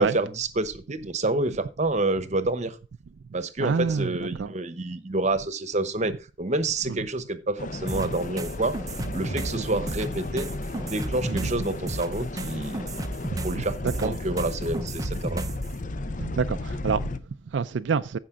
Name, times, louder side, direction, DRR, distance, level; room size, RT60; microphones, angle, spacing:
voice 1, 0.0-2.8 3.3-8.8 9.1-10.5 10.8-13.0 13.4-15.4, right 2 dB, 40° right, 1.0 m, -28 dB
voice 2, 3.6-4.5 6.9-7.0 8.0-8.1 9.6-9.7 11.3-11.5 13.3-14.2 16.2-18.2, right 5 dB, 65° right, 0.4 m, -28 dB
sound 1, 7.6-17.2, left 2 dB, 40° left, 0.6 m, -34 dB
sound 2, 7.9-15.7, right 1 dB, 20° right, 0.6 m, -33 dB
15.0 x 5.3 x 3.7 m
head